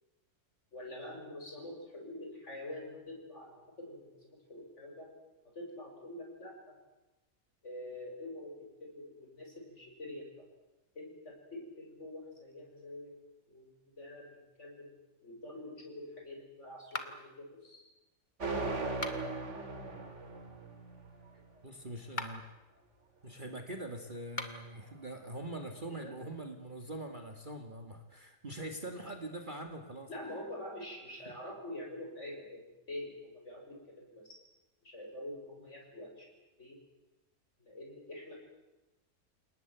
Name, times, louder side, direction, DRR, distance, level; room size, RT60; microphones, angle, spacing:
voice 1, 0.7-5.1 5.4-6.8 7.6-10.4 10.9-13.1 13.5-14.9 15.2-17.8 25.9-26.1 30.1-34.4 34.8-36.3 36.6-36.8 37.6-38.4, left 1 dB, 45° left, 1 dB, 6.2 m, -46 dB
sound 1, 16.9-17.4 18.9-19.5 22.0-22.5 24.2-24.7, left 2 dB, 30° left, 2.1 m, -41 dB
sound 2, 18.4-21.3, right 3 dB, 45° right, 2.7 m, -38 dB
voice 2, 21.6-22.4 23.2-30.1 31.3-31.4, right 1 dB, 30° right, 4 dB, 2.2 m, -43 dB
28.5 x 19.0 x 9.3 m, 1.0 s
omnidirectional pair, 1.7 m